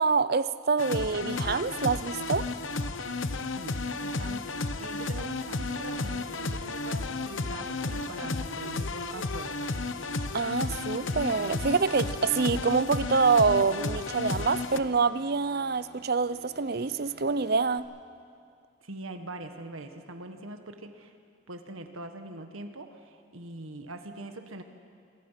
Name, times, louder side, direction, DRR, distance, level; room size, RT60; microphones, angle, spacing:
voice 1, 0.0-2.4 10.3-17.9, right 4 dB, 50° right, 15 dB, 0.6 m, -26 dB
sound 1, 0.8-14.8, left 3 dB, 70° left, 1.0 m, -33 dB
voice 2, 3.5-4.4 4.8-9.6 18.8-21.1 21.5-24.6, right 2 dB, 90° right, 6 dB, 1.7 m, -42 dB
sound 2, 5.8-17.8, left 1 dB, 55° left, 2.4 m, -55 dB
27.0 x 22.5 x 5.9 m, 2.3 s
head